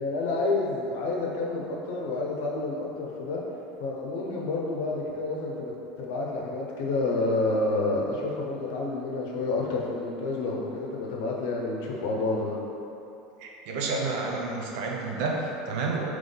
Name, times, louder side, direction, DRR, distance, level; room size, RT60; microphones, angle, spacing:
voice 1, 0.0-3.5 3.8-12.6, left 2 dB, 65° left, -2 dB, 0.7 m, -29 dB
voice 2, 13.4-16.1, right 3 dB, 65° right, -1 dB, 0.6 m, -30 dB
3.7 x 3.1 x 3.8 m, 2.8 s
hypercardioid pair, 80°, 0 cm